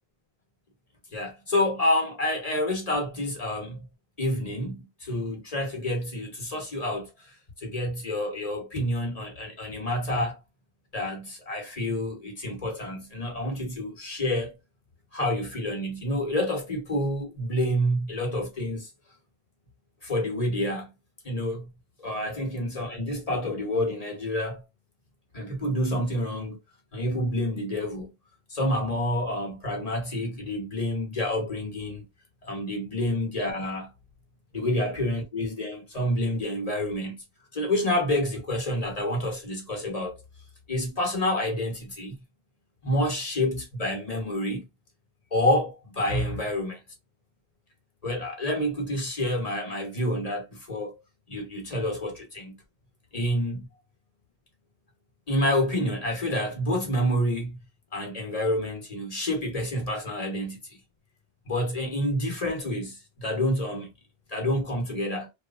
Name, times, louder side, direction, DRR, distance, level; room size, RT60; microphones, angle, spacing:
voice 1, 1.1-3.9 4.2-10.4 10.9-14.6 15.1-18.9 20.0-20.9 21.2-21.7 22.0-24.6 25.3-26.6 26.9-28.1 28.5-32.0 32.4-33.9 34.5-37.2 37.5-40.1 40.7-42.1 42.8-44.6 45.3-46.8 48.0-51.0 51.3-52.5 53.1-53.7 55.3-57.6 57.9-60.8 61.5-63.9 64.3-65.3, left 1 dB, 35° left, 1.0 m, -28 dB
2.8 x 2.3 x 2.4 m
omnidirectional pair, 1.1 m